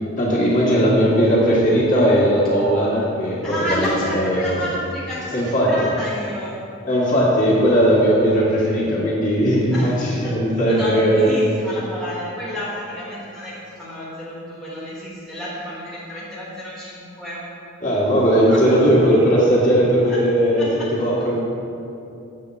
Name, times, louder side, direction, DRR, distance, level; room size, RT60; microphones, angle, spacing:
voice 1, 0.2-4.6 5.3-5.7 6.9-11.4 17.8-20.6 20.9-21.4, equal, 40° left, -7 dB, 1.8 m, -18 dB
voice 2, 3.4-6.6 9.7-17.5 18.5-18.7 20.0-20.3 20.6-20.9, equal, ahead, -8 dB, 1.2 m, -30 dB
7.6 x 3.7 x 6.5 m, 2.6 s
head